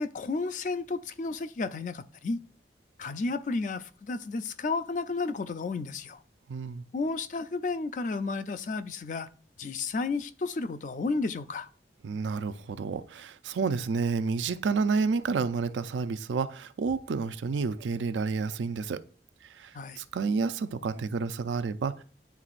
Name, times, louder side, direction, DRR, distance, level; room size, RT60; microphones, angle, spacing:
voice 1, 0.0-2.4 3.0-6.2 6.9-9.3 9.6-11.7 19.7-20.0, left 3 dB, 45° left, 0.4 m, -32 dB
voice 2, 6.5-6.8 12.0-19.0 19.5-22.0, right 4 dB, 90° right, 0.4 m, -30 dB
10.0 x 3.9 x 2.5 m
head